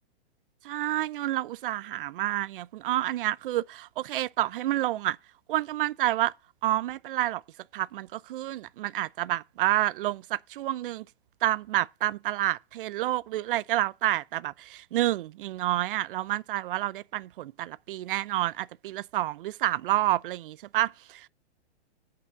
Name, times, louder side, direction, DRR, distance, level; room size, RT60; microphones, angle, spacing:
voice 1, 0.6-5.2 5.5-6.3 6.6-7.4 7.7-11.0 11.4-21.3, right 15 dB, 55° right, 0.6 m, -29 dB
8.9 x 5.7 x 7.1 m
hypercardioid pair, 150°, 33 cm